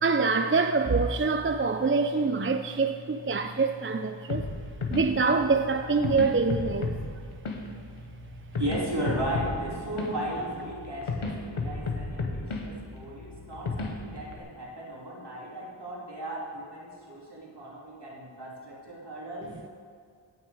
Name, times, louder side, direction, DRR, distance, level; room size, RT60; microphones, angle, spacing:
voice 1, 0.0-4.4 4.9-7.0, right 4 dB, 25° right, 7 dB, 0.4 m, -25 dB
sound 1, 4.3-14.4, left 3 dB, 85° left, 1.2 m, -34 dB
voice 2, 8.6-19.5, right 1 dB, 55° right, -4 dB, 2.8 m, -36 dB
16.5 x 6.2 x 4.8 m, 2.2 s
wide cardioid pair, 50°, 49 cm